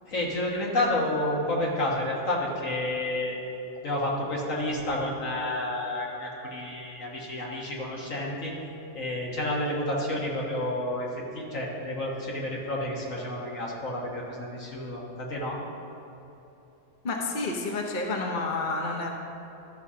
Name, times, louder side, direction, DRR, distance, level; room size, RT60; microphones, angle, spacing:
voice 1, 0.1-3.4 3.8-8.5 8.9-11.1 11.3-15.6, left 1 dB, 75° left, -3 dB, 1.9 m, -30 dB
voice 2, 17.0-19.1, left 3 dB, 40° left, 1 dB, 0.9 m, -29 dB
12.5 x 4.2 x 6.2 m, 2.9 s
omnidirectional pair, 1.4 m